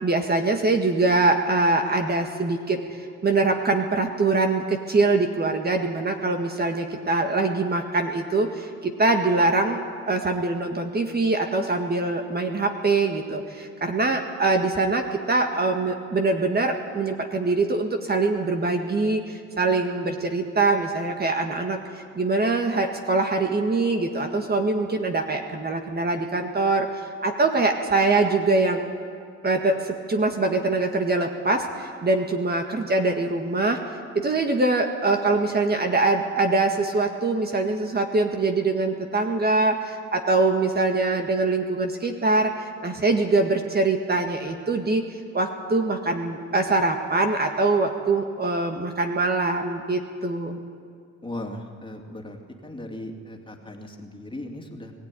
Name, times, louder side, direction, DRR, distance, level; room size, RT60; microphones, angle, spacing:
voice 1, 0.0-26.9 27.2-28.9 29.4-33.8 34.2-45.1 45.3-50.6, right 3 dB, 30° right, 4 dB, 1.8 m, -23 dB
voice 2, 51.2-54.9, left 1 dB, 15° left, 2 dB, 2.7 m, -37 dB
21.0 x 15.0 x 9.9 m, 2.1 s
cardioid pair, 90°, 30 cm